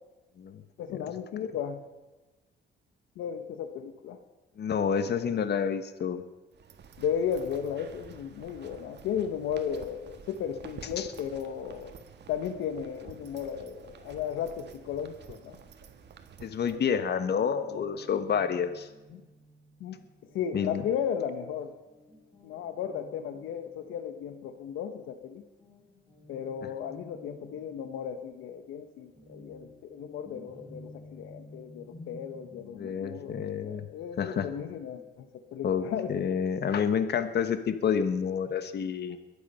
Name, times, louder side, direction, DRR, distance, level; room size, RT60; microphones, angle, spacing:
voice 1, 0.8-1.8 3.2-4.2 4.9-5.3 7.0-11.9 12.3-15.6 16.7-17.4 17.7-17.8 19.1-19.2 19.8-20.0 20.3-21.7 22.4-25.4 26.3-36.1, left 8 dB, 90° left, 9 dB, 1.1 m, -35 dB
voice 2, 4.6-6.2 11.0-11.1 16.4-18.9 20.5-20.8 32.8-33.9 34.2-34.5 35.6-39.2, left 7 dB, 55° left, 10 dB, 1.3 m, -29 dB
sound 1, 6.5-16.8, right 6 dB, 60° right, 1.6 m, -50 dB
Guitar, 17.6-25.3 25.6-36.0, left 1 dB, 15° left, 5.5 m, -54 dB
22.5 x 8.5 x 5.5 m, 1.2 s
cardioid pair, 90°, 20 cm